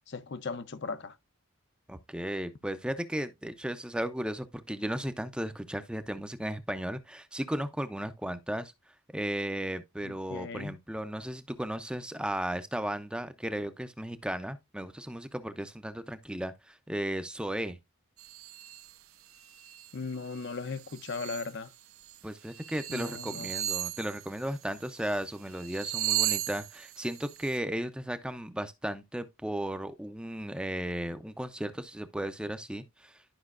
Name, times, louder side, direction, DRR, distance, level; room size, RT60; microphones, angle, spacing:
voice 1, 0.1-1.2 10.0-10.8 19.9-21.7 22.9-23.5, left 4 dB, 55° left, 0.6 m, -37 dB
voice 2, 1.9-8.7 9.1-17.8 22.2-33.2, right 1 dB, 5° right, 0.5 m, -35 dB
sound 1, 18.2-18.9 19.3-19.9 20.3-21.5 22.0-22.2 22.5-25.2 25.5-27.6, right 14 dB, 75° right, 0.7 m, -36 dB
11.5 x 5.5 x 2.4 m
head